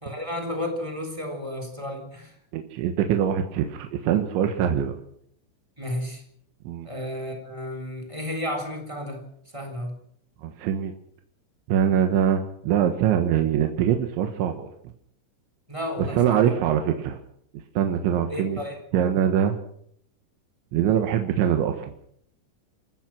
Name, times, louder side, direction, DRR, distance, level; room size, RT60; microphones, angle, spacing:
voice 1, 0.0-2.3 5.8-6.2 6.8-10.0 15.7-16.5 18.3-18.9, left 1 dB, 5° right, 2 dB, 2.9 m, -32 dB
voice 2, 2.5-5.0 6.7-6.9 10.4-10.9 11.7-14.7 16.1-17.2 17.8-18.6 18.9-19.6 20.7-21.9, right 9 dB, 70° right, 5 dB, 3.5 m, -23 dB
28.0 x 15.5 x 6.2 m, 0.70 s
omnidirectional pair, 5.9 m